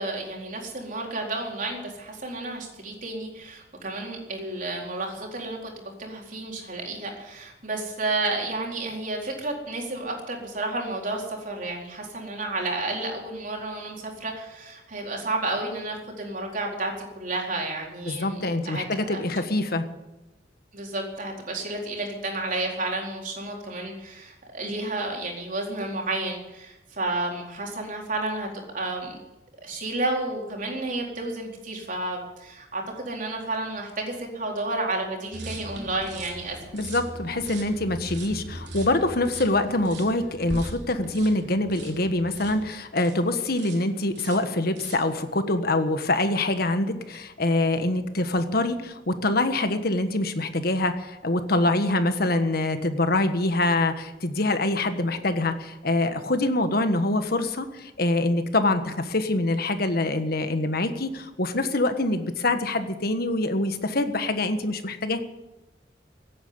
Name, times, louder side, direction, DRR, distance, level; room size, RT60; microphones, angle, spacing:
voice 1, 0.0-19.2 20.7-29.2 29.6-36.6, right 2 dB, 50° right, 0 dB, 4.3 m, -31 dB
voice 2, 18.1-19.8 36.7-65.2, left 2 dB, 60° left, 8 dB, 1.5 m, -25 dB
sound 1, 35.3-43.2 43.6-43.9 44.1-45.1, right 1 dB, 75° right, 3.4 m, -40 dB
16.0 x 9.3 x 9.6 m, 1.0 s
head